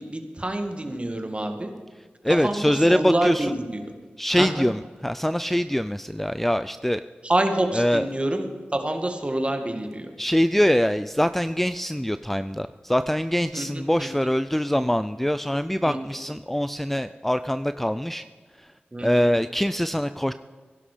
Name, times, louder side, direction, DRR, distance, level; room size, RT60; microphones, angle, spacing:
voice 1, 0.0-1.7 2.3-3.8 4.3-4.7 7.2-10.1 13.5-14.1 14.7-14.8 15.8-16.0 18.9-19.3, right 1 dB, 30° right, 5 dB, 2.0 m, -27 dB
voice 2, 2.0-3.5 4.2-7.0 7.7-8.1 10.2-18.2 18.5-18.7 19.0-20.3, equal, 5° left, 12 dB, 0.4 m, -24 dB
16.0 x 11.5 x 5.1 m, 1.5 s
cardioid pair, 55°, 4 cm